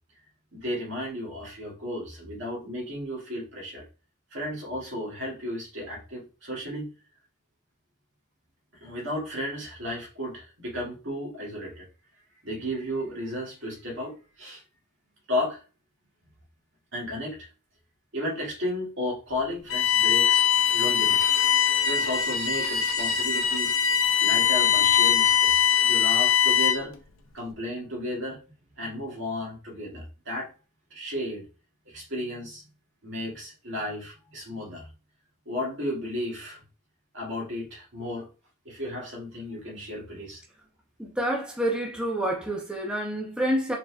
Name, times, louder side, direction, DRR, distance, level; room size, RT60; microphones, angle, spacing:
voice 1, 0.5-3.8 4.3-6.9 8.8-11.9 12.4-14.6 15.3-15.6 16.9-17.5 18.1-21.3 21.8-23.7 24.2-26.9 27.3-28.4 28.8-30.5 30.9-31.4 31.9-32.6 33.0-34.9 35.5-36.6 37.1-38.3 38.7-40.4, left 1 dB, 65° right, 1.9 m, -34 dB
Bowed string instrument, 19.7-26.9, left 8 dB, 70° left, 0.7 m, -22 dB
voice 2, 41.0-43.8, right 1 dB, 5° right, 0.7 m, -28 dB
4.3 x 3.9 x 2.3 m
head